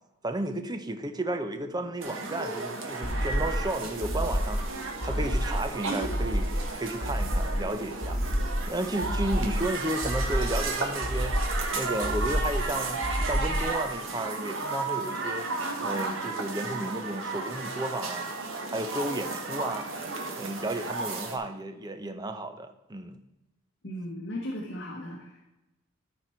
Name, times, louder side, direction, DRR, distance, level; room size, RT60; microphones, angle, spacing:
voice 1, 0.2-4.6 5.0-6.5 6.7-8.2 8.7-11.4 11.7-15.5 15.8-18.3 18.7-19.9 20.4-23.2, right 1 dB, 20° right, 8 dB, 0.7 m, -33 dB
sound 1, 2.0-21.4, right 3 dB, 80° right, 1.4 m, -34 dB
sound 2, 3.0-3.7 4.0-4.7 5.0-5.6 6.0-6.7 7.0-7.6 8.0-8.7 9.0-9.6 10.0-10.7 11.0-11.7 12.0-12.7 13.0-13.7, equal, 30° left, 2.3 m, -29 dB
voice 2, 23.8-25.3, equal, 60° left, -1 dB, 1.3 m, -36 dB
13.0 x 4.4 x 4.4 m, 1.0 s
head